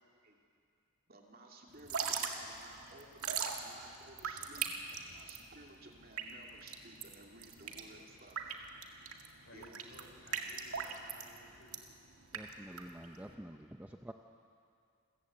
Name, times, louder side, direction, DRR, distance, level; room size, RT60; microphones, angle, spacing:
voice 1, 1.1-8.5 9.5-9.7, right 2 dB, 45° right, 0 dB, 2.6 m, -56 dB
Drip / Trickle dribble, 1.7-13.3, right 6 dB, 90° right, 1.9 m, -41 dB
voice 2, 9.4-11.8, left 1 dB, 60° left, 1 dB, 4.6 m, -58 dB
voice 3, 12.3-14.1, right 1 dB, 5° right, 5 dB, 0.5 m, -48 dB
28.0 x 14.5 x 8.6 m, 2.4 s
head